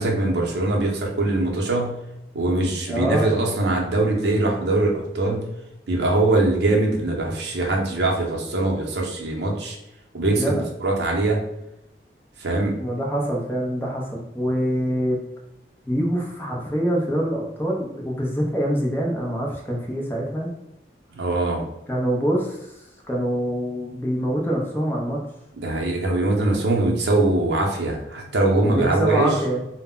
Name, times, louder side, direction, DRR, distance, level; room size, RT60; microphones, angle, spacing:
voice 1, 0.0-2.0 2.3-5.5 5.9-9.8 10.1-11.4 12.4-12.8 21.2-21.6 25.6-29.3, right 2 dB, 70° right, 0 dB, 0.6 m, -22 dB
voice 2, 2.9-3.3 10.3-10.6 12.8-15.2 15.9-20.5 21.9-22.7 23.1-25.2 28.6-29.6, equal, 10° left, -2 dB, 0.5 m, -25 dB
2.1 x 2.1 x 3.6 m, 0.86 s
head